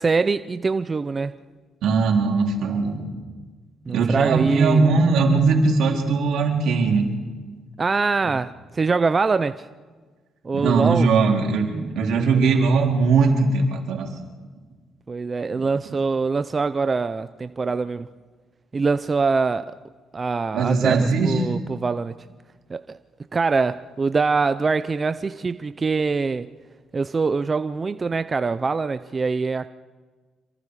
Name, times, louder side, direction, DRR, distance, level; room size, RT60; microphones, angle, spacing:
voice 1, 0.0-1.3 3.9-4.8 7.8-9.7 10.4-11.1 15.1-18.1 18.7-19.7 20.1-22.1 22.7-23.0 23.3-26.5 26.9-29.7, right 4 dB, 30° right, 12 dB, 0.6 m, -23 dB
voice 2, 1.8-3.1 3.9-7.1 10.5-14.1 15.5-15.6 20.5-21.5, right 4 dB, 80° right, 1 dB, 4.0 m, -20 dB
27.0 x 24.0 x 4.9 m, 1.4 s
cardioid pair, 90°, 0 cm